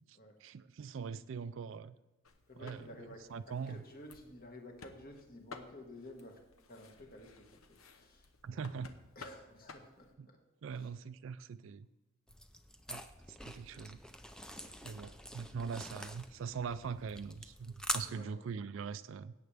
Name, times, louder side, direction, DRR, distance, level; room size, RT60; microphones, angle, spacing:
voice 1, 0.0-2.0 2.6-2.9 3.3-3.8 8.4-9.0 10.2-10.3 10.6-11.9 12.9-14.0 14.8-19.3, right 6 dB, 70° right, 13 dB, 0.4 m, -42 dB
sound 1, 2.2-10.2, left 4 dB, 85° left, 1.0 m, -56 dB
voice 2, 2.5-6.4 6.7-8.3 8.5-8.6 9.2-10.4 10.7-10.9 14.5-14.8 18.0-18.5, left 1 dB, 45° left, 2 dB, 1.8 m, -53 dB
sound 2, 12.3-18.0, equal, 5° left, 0.5 m, -44 dB
17.5 x 8.7 x 3.5 m, 1.0 s
head